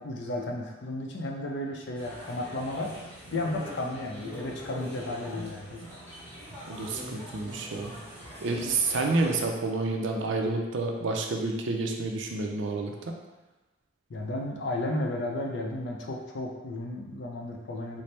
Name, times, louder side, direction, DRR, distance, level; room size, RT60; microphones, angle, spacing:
voice 1, 0.0-2.9 3.3-5.8 14.1-18.0, left 1 dB, 60° left, 0 dB, 0.5 m, -33 dB
sound 1, 1.9-9.4, equal, 10° left, 0.8 m, -43 dB
voice 2, 6.7-7.9 8.4-13.1, right 3 dB, 70° right, 2 dB, 0.5 m, -29 dB
4.3 x 2.0 x 3.2 m, 1.1 s
head